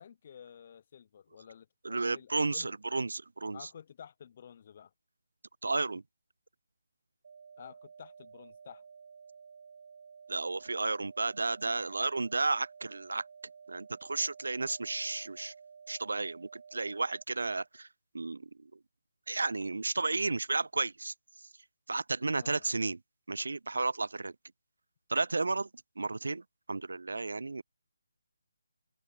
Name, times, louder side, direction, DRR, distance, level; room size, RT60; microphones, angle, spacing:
voice 1, 0.0-2.7 3.5-4.9 7.6-8.8 22.4-22.7, left 8 dB, 40° left, 0.5 m, -51 dB
voice 2, 1.8-3.7 5.6-6.0 10.3-13.2 13.7-15.5 15.9-17.9 18.1-18.8 19.3-21.1 21.9-23.0 23.3-24.3 25.1-25.7 26.0-26.4 26.7-27.6, right 3 dB, 70° right, 0.4 m, -33 dB
sound 1, 7.2-17.2, right 6 dB, 50° right, 0.7 m, -53 dB
open air
figure-of-eight pair, 150°, 0 cm